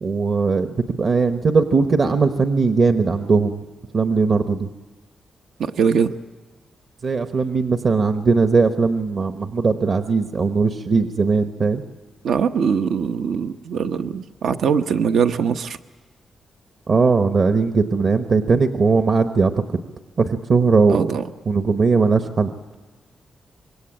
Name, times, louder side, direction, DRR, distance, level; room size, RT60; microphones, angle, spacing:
voice 1, 0.0-3.6 3.9-4.7 7.0-11.8 16.9-19.5 20.2-21.2 21.5-22.5, right 4 dB, 50° right, 8 dB, 1.1 m, -19 dB
voice 2, 5.6-6.1 12.2-15.8 20.9-21.2, right 6 dB, 85° right, 8 dB, 0.9 m, -21 dB
26.0 x 22.5 x 8.8 m, 1.3 s
wide cardioid pair, 120°, 0 cm